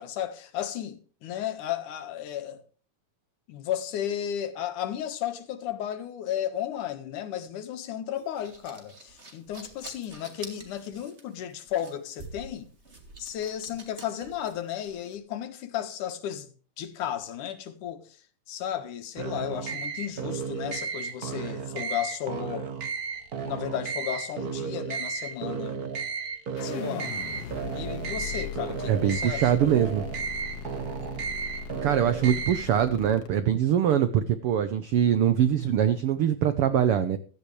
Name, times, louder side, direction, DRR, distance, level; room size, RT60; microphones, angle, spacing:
voice 1, 0.0-2.6 3.5-12.7 13.2-16.5 16.8-18.2 18.5-22.7 23.4-26.0 26.6-27.1 27.7-29.6, left 10 dB, 75° left, 2.9 m, -34 dB
sound 1, 8.2-15.2, right 2 dB, 20° right, 2.6 m, -47 dB
sound 2, 19.2-32.7, right 6 dB, 50° right, 1.1 m, -34 dB
sound 3, 26.6-33.3, left 5 dB, 55° left, 2.3 m, -39 dB
voice 2, 28.9-30.0 31.8-37.2, right 9 dB, 90° right, 1.2 m, -23 dB
16.0 x 13.0 x 3.2 m
omnidirectional pair, 3.7 m